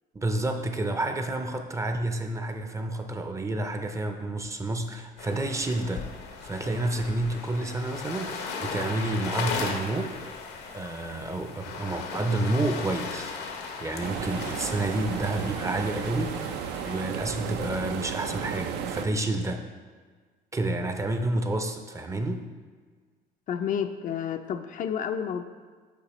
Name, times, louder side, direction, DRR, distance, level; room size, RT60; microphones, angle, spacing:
voice 1, 0.1-6.1 6.4-10.4 10.7-13.4 13.8-19.6 20.5-22.5, right 2 dB, 20° right, 6 dB, 0.4 m, -30 dB
sound 1, 5.2-17.1, left 5 dB, 80° left, 0.8 m, -37 dB
sound 2, 14.0-19.1, right 8 dB, 85° right, 0.4 m, -34 dB
voice 2, 23.5-25.4, left 8 dB, 50° left, 7 dB, 0.4 m, -30 dB
6.9 x 5.0 x 3.0 m, 1.5 s
cardioid pair, 110°, 17 cm